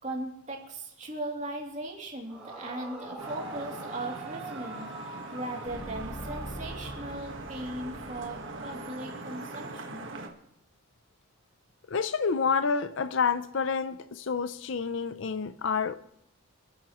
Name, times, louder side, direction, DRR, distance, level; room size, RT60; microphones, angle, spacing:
voice 1, 0.0-10.1, right 1 dB, 35° right, 2.8 m, -38 dB
Yell / Screaming, 2.2-7.2, right 2 dB, 5° right, 4.0 m, -44 dB
Vehicle horn car horn honking / Traffic noise roadway noise, 3.2-10.3, right 2 dB, 60° right, 1.5 m, -42 dB
sound 1, 5.6-8.8, equal, 85° left, 3.7 m, -44 dB
voice 2, 11.9-16.0, left 5 dB, 60° left, 0.5 m, -28 dB
29.0 x 10.5 x 3.1 m
head